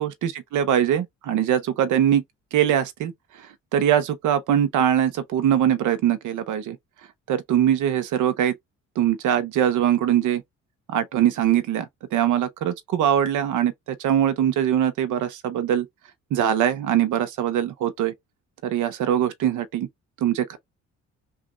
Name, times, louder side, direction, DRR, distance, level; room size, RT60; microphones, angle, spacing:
voice 1, 0.0-2.2 2.5-3.1 3.7-6.8 7.3-8.5 9.0-10.4 10.9-15.9 16.3-18.1 18.6-19.9 20.2-20.6, right 10 dB, 80° right, 0.7 m, -22 dB
3.0 x 2.4 x 3.7 m
cardioid pair, 90°, 30 cm